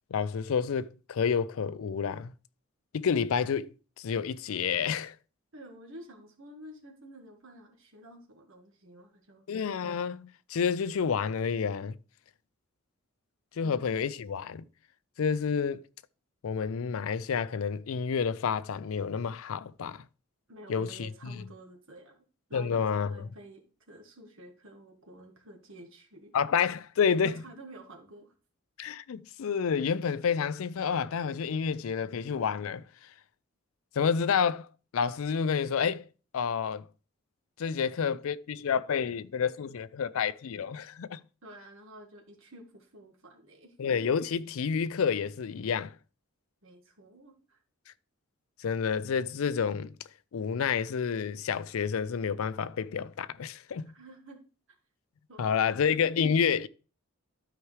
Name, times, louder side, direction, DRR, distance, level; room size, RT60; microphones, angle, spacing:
voice 1, 0.1-2.3 2.9-5.2 9.5-12.0 13.6-14.6 15.2-15.8 16.4-20.0 20.7-21.4 22.5-23.3 26.3-27.4 28.8-32.8 34.0-34.7 34.9-36.0 36.3-36.9 37.6-41.2 43.8-45.9 48.6-49.9 50.3-53.9 55.4-56.7, left 6 dB, 70° left, 0.4 m, -29 dB
voice 2, 5.5-9.4 13.6-13.8 20.5-22.2 22.5-26.3 27.2-28.3 41.4-43.7 46.6-47.6 53.9-54.4 55.3-55.8, right 1 dB, 60° right, 1.6 m, -50 dB
12.5 x 4.8 x 3.2 m
head